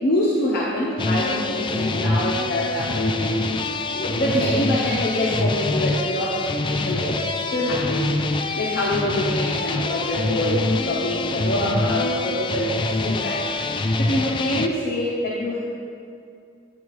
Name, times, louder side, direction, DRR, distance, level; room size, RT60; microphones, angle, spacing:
voice 1, 0.0-3.5 3.9-8.1 8.4-13.5 14.0-15.6, equal, 55° left, -5 dB, 0.9 m, -25 dB
sound 1, 1.0-14.7, left 3 dB, 25° left, 0.3 m, -25 dB
sound 2, 1.7-1.8 2.8-4.0 4.3-5.6 6.9-10.8, equal, 75° right, 1.6 m, -42 dB
10.5 x 8.2 x 3.1 m, 2.4 s
head